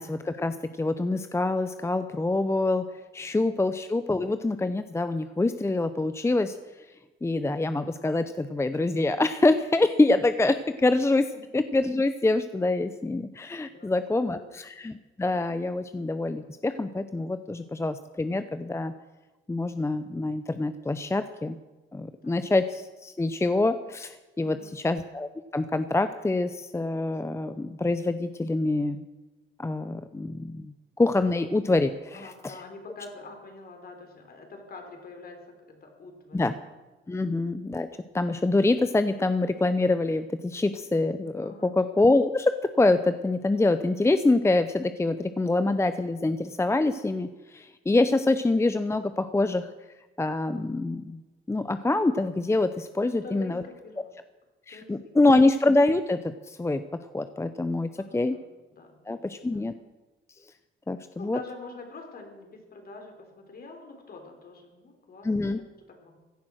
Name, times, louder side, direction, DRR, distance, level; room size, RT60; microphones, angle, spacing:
voice 1, 0.0-2.8 3.1-6.6 7.2-11.3 11.5-18.9 19.5-21.6 21.9-29.0 29.6-32.5 36.3-36.5 37.1-37.9 38.1-49.7 50.2-51.2 51.5-53.6 54.7-56.8 57.1-58.4 59.1-59.7 60.9-61.4 65.2-65.6, left 2 dB, 15° left, 11 dB, 0.6 m, -25 dB
voice 2, 13.7-14.5 22.2-22.5 24.4-24.9 32.1-35.4 35.7-36.4 37.1-37.2 41.4-41.7 53.0-54.1 54.7-55.1 58.0-58.4 58.7-59.2 59.5-59.7 61.2-65.6 66.0-66.2, left 3 dB, 50° left, 3 dB, 3.7 m, -46 dB
16.0 x 10.5 x 6.3 m, 1.2 s
cardioid pair, 90°, 20 cm